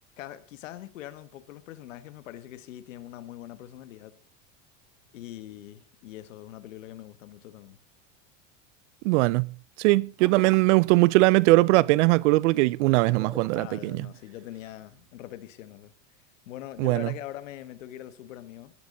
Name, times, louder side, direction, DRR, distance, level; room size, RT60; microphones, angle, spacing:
voice 1, 0.2-4.2 5.1-7.8 13.5-15.9 16.5-18.7, left 13 dB, 85° left, 1.7 m, -42 dB
voice 2, 9.0-9.5 9.8-14.1 16.8-17.1, right 22 dB, 70° right, 0.6 m, -21 dB
sound 1, 10.2-11.0 13.1-14.2 14.8-14.9, right 2 dB, 5° right, 1.5 m, -44 dB
19.0 x 12.5 x 4.0 m
supercardioid pair, 125°, 37 cm